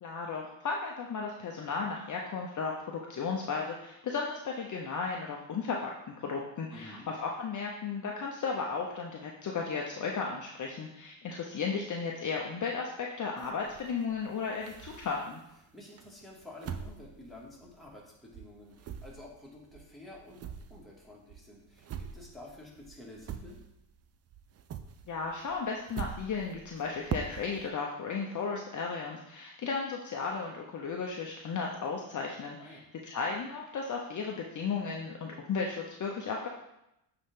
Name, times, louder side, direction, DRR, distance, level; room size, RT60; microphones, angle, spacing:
voice 1, 0.0-5.9 6.2-15.4 25.1-36.5, left 5 dB, 40° left, 0 dB, 0.9 m, -35 dB
voice 2, 6.7-7.1 15.7-23.6 32.6-32.9, left 2 dB, ahead, -5 dB, 2.2 m, -50 dB
sound 1, 13.4-15.5 16.0-18.1 18.3-24.0 24.3-27.7, right 8 dB, 35° right, 0.5 m, -43 dB
8.3 x 4.0 x 3.7 m, 0.84 s
cardioid pair, 95°, 46 cm